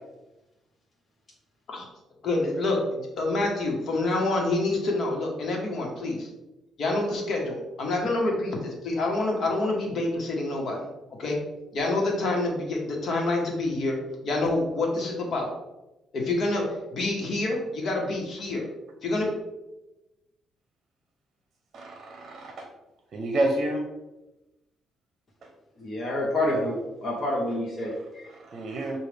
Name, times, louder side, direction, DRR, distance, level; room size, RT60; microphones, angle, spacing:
voice 1, 2.2-6.3 6.8-10.8 11.2-11.4 11.7-14.0 14.2-15.5 16.1-18.7 19.0-19.3, left 2 dB, 60° left, 0 dB, 1.2 m, -27 dB
voice 2, 21.7-22.7 23.1-23.8 25.4-25.5 27.8-29.0, right 1 dB, 50° right, 3 dB, 0.7 m, -30 dB
voice 3, 25.8-28.2, left 1 dB, 40° left, -3 dB, 1.0 m, -28 dB
6.2 x 2.4 x 3.3 m, 1.0 s
cardioid pair, 90°, 0 cm